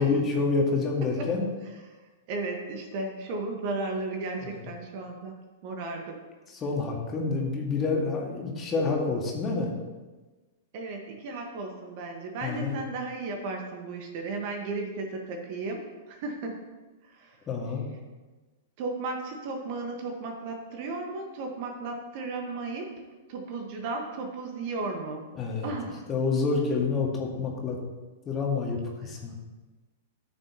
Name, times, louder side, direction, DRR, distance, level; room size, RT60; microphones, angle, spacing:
voice 1, 0.0-1.5 4.4-4.7 6.5-9.7 12.4-12.8 17.5-17.9 25.3-25.7 26.1-27.8 28.3-29.3, left 4 dB, 25° left, -1 dB, 2.0 m, -28 dB
voice 2, 2.3-5.4 5.6-6.2 10.7-16.6 17.2-17.4 18.8-22.9 23.3-25.3 25.6-26.0, right 3 dB, 45° right, 3 dB, 1.5 m, -34 dB
14.0 x 6.3 x 3.0 m, 1.2 s
figure-of-eight pair, 105°, 0 cm